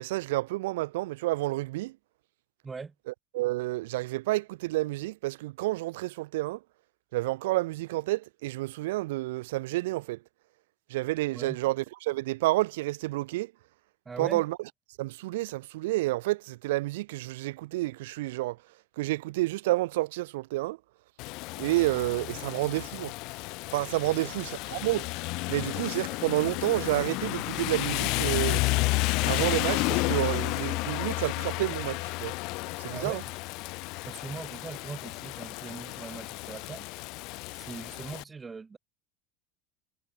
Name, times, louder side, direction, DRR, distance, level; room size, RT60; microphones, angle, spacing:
voice 1, 0.0-2.0 3.1-6.6 7.1-10.2 10.9-13.5 14.2-14.6 15.0-18.6 19.0-20.8 21.6-23.1 23.7-25.1 25.5-28.6 29.2-32.3 32.8-33.2, right 19 dB, 80° right, 4.0 m, -30 dB
voice 2, 2.6-2.9 11.3-11.6 14.1-14.4 24.1-24.3 32.9-33.4 34.0-36.9 37.5-38.8, right 4 dB, 20° right, 4.3 m, -41 dB
Rain, 21.2-38.2, left 25 dB, 60° left, 3.3 m, -32 dB
supercardioid pair, 120°, 0 cm